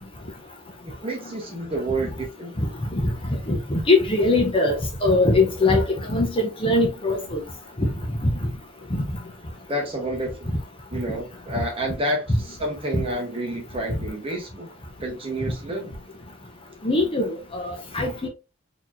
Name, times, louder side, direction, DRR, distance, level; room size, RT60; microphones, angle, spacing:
voice 1, 0.8-2.6 9.7-10.5 10.9-14.7 15.0-15.9, right 1 dB, 25° right, 1.0 m, -29 dB
voice 2, 3.5-4.7 5.0-7.4 7.8-7.9 8.2-8.3 8.9-9.0 12.9-13.0 16.8-18.3, left 2 dB, 25° left, 0.7 m, -21 dB
4.2 x 2.9 x 2.5 m
head